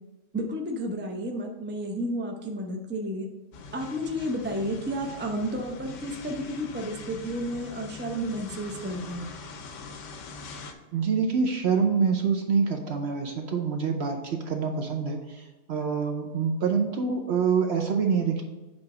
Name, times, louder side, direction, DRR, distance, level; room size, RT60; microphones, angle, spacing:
voice 1, 0.3-3.3 3.7-9.3, equal, 15° right, 2 dB, 0.3 m, -32 dB
sound 1, 3.5-10.7, left 4 dB, 65° left, 1.0 m, -43 dB
voice 2, 10.9-18.4, right 5 dB, 60° right, 4 dB, 0.7 m, -26 dB
7.5 x 3.0 x 4.8 m, 1.2 s
omnidirectional pair, 1.5 m